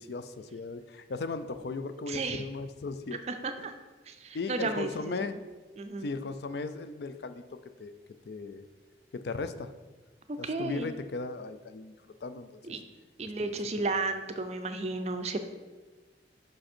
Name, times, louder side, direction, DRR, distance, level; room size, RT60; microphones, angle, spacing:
voice 1, 0.0-3.2 4.3-5.4 6.0-7.4 7.8-7.9 8.3-8.7 9.1-9.7 10.4-11.9 12.2-12.6 13.4-14.0, left 3 dB, 60° left, 11 dB, 0.4 m, -37 dB
voice 2, 2.1-2.4 3.3-3.7 4.1-5.3 5.8-6.1 10.3-10.9 12.6-12.8 13.2-15.4, right 3 dB, 35° right, 8 dB, 0.4 m, -33 dB
5.8 x 5.2 x 4.3 m, 1.3 s
head